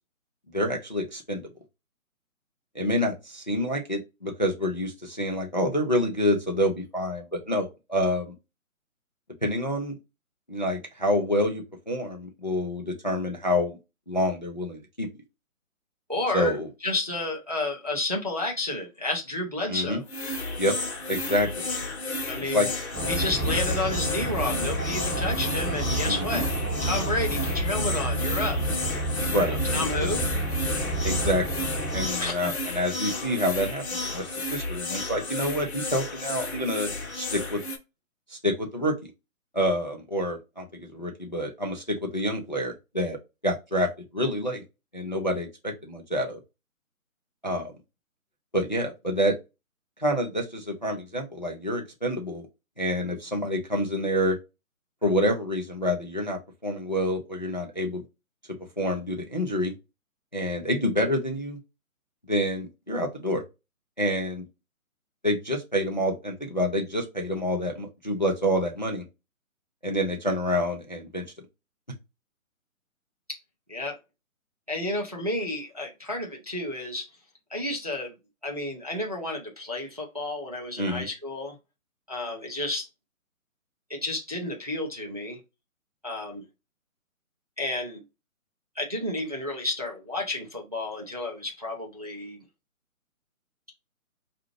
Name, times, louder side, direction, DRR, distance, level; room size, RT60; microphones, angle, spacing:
voice 1, 0.5-1.4 2.7-8.3 9.4-10.0 10.5-13.8 14.1-15.1 16.3-16.7 19.7-20.0 20.6-20.7 21.1-21.7 22.4-22.7 23.4-23.5 26.0-26.4 29.3-30.1 31.0-37.6 38.3-38.9 39.5-43.2 43.4-43.9 44.1-44.6 44.9-46.4 47.4-47.7 48.5-49.4 50.0-52.5 52.8-54.4 55.0-58.0 58.8-59.7 60.3-61.6 62.3-63.4 64.0-64.4 65.2-69.0 69.8-71.2 80.8-81.1, equal, 35° left, 0.4 m, -27 dB
voice 2, 16.1-20.0 22.3-22.7 23.1-26.5 26.8-28.6 29.4-30.2 32.2-32.5 73.7-74.0 74.7-77.1 77.5-78.1 78.4-81.6 82.1-82.9 83.9-85.4 86.0-86.5 87.6-88.0 88.8-92.4, left 2 dB, 30° right, 0.5 m, -31 dB
sound 1, 20.1-37.8, left 2 dB, 50° left, 1.0 m, -32 dB
sound 2, 22.9-32.1, right 1 dB, 5° right, 0.8 m, -29 dB
4.7 x 2.5 x 3.0 m
hypercardioid pair, 175°, 42 cm